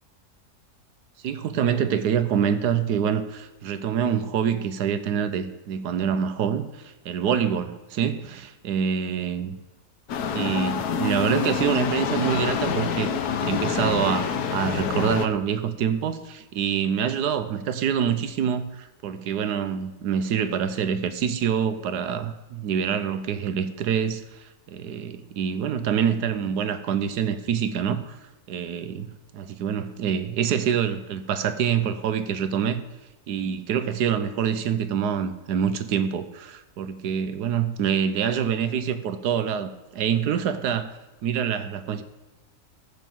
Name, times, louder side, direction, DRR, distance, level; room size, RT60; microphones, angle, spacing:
voice 1, 1.2-9.6 10.3-13.1 13.4-28.2 28.5-32.8 33.3-40.9 41.2-42.0, right 8 dB, 80° right, 1.3 m, -26 dB
sound 1, 10.1-15.3, left 7 dB, 75° left, 1.4 m, -26 dB
13.5 x 5.4 x 7.7 m
omnidirectional pair, 1.7 m